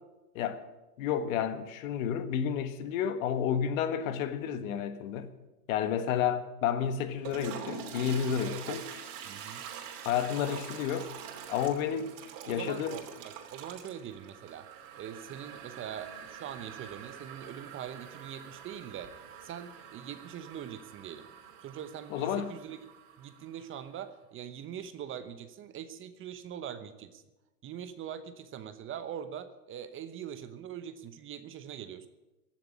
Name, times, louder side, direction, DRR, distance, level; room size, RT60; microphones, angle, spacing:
voice 1, 1.0-5.3 5.7-8.8 10.0-11.1 11.5-12.1 12.5-13.0 22.1-22.5, left 8 dB, 55° left, 1.6 m, -31 dB
Toilet flush, 7.1-23.8, right 8 dB, 55° right, 3.0 m, -46 dB
voice 2, 8.4-8.8 9.2-9.6 12.3-14.7 15.0-19.1 19.4-21.3 21.6-22.8 23.2-27.2 27.6-32.1, right 9 dB, 25° right, 0.9 m, -42 dB
16.0 x 7.5 x 9.8 m
hypercardioid pair, 120°, 47 cm